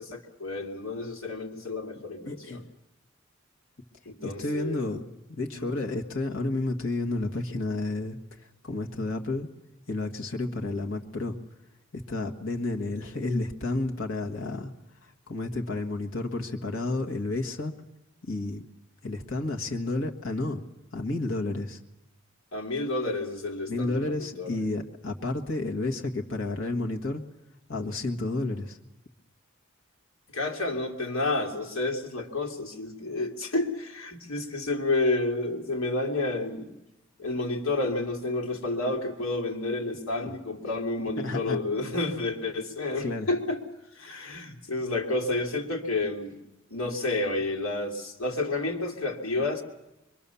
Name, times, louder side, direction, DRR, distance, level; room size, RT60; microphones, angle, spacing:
voice 1, 0.0-2.6 4.1-4.8 5.6-5.7 22.5-24.6 30.3-36.7 37.2-43.6 43.9-46.4 46.7-49.6, left 2 dB, 80° left, 2 dB, 2.8 m, -30 dB
voice 2, 2.2-2.6 4.2-9.5 9.9-11.4 11.9-14.7 15.0-17.7 18.3-18.6 19.0-20.6 20.9-21.8 23.7-27.2 27.7-28.8 40.2-40.3 41.2-41.6 43.0-43.3, left 2 dB, 65° left, 2 dB, 1.8 m, -31 dB
24.0 x 24.0 x 7.1 m, 0.97 s
head